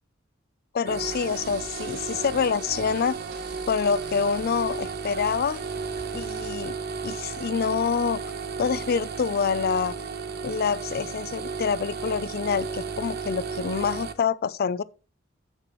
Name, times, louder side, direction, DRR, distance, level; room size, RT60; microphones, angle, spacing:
voice 1, 0.7-3.2 3.7-5.6 6.1-6.8 7.0-8.2 8.6-9.9 10.4-14.8, left 6 dB, 50° left, 0.4 m, -26 dB
sound 1, 0.8-14.1, right 5 dB, 55° right, 1.0 m, -34 dB
sound 2, 1.0-6.5, right 3 dB, 70° right, 3.4 m, -49 dB
9.9 x 7.8 x 3.0 m
head